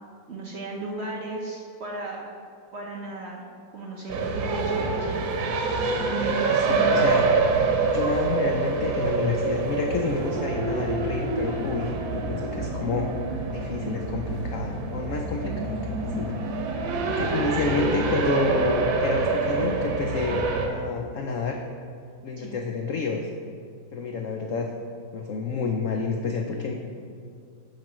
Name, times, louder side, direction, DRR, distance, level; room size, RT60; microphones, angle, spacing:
voice 1, 0.3-2.3 2.7-3.4 3.7-5.2 6.0-7.1 22.4-22.5, right 2 dB, 50° right, -2 dB, 0.8 m, -35 dB
sound 1, 4.1-20.7, right 3 dB, 80° right, 1.6 m, -26 dB
voice 2, 6.7-7.3 7.9-13.1 13.5-16.4 17.1-21.6 22.2-23.3 23.9-24.7 25.1-26.7, left 4 dB, 85° left, 3 dB, 0.7 m, -29 dB
6.6 x 6.0 x 6.1 m, 2.3 s
omnidirectional pair, 2.1 m